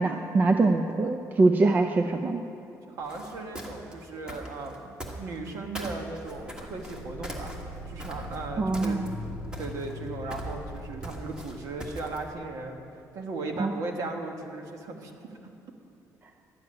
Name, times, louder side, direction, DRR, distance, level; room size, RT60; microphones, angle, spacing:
voice 1, 0.0-2.4 8.6-9.1 13.6-13.7, right 3 dB, 30° right, 6 dB, 0.5 m, -23 dB
voice 2, 2.9-7.5 7.8-9.0 9.6-12.8 13.1-15.1, right 3 dB, 60° right, 3 dB, 1.4 m, -37 dB
sound 1, 3.0-5.5 5.8-8.4 8.7-9.3 9.5-12.3, right 1 dB, 15° right, 1.4 m, -40 dB
sound 2, 6.3-12.4, left 1 dB, 90° right, 2.7 m, -41 dB
12.0 x 7.3 x 9.6 m, 2.7 s
cardioid pair, 160°, 6 cm